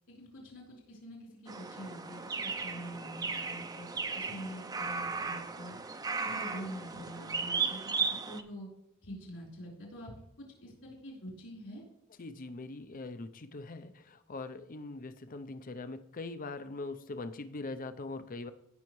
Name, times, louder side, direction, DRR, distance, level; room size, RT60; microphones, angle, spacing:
voice 1, 0.1-3.9 4.1-5.8 6.2-7.8 8.1-8.7 9.0-10.1 10.6-11.8, equal, 70° left, -3 dB, 4.1 m, -45 dB
sound 1, 1.5-8.4, right 4 dB, 20° right, 0.5 m, -36 dB
voice 2, 12.2-18.5, left 3 dB, 40° left, 10 dB, 0.6 m, -42 dB
16.5 x 5.6 x 3.1 m, 0.83 s
head